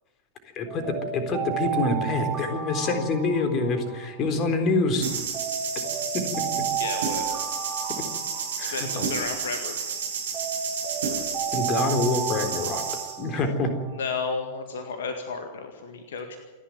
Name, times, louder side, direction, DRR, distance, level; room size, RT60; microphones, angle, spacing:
Alarm, 0.7-4.8 5.3-9.8 10.3-14.1, right 8 dB, 20° right, 6.3 m, -33 dB
voice 1, 1.1-5.1 6.1-6.2 6.6-6.7 8.6-9.1 11.5-12.8 13.2-13.7, left 3 dB, 35° left, 6 dB, 3.9 m, -26 dB
sound 1, 5.0-13.2, right 6 dB, 65° right, 7.4 m, -31 dB
voice 2, 6.8-7.4 8.7-9.9 13.9-16.4, left 4 dB, 60° left, 6 dB, 1.9 m, -33 dB
28.0 x 11.5 x 9.4 m, 1.3 s
figure-of-eight pair, 90°, 0 cm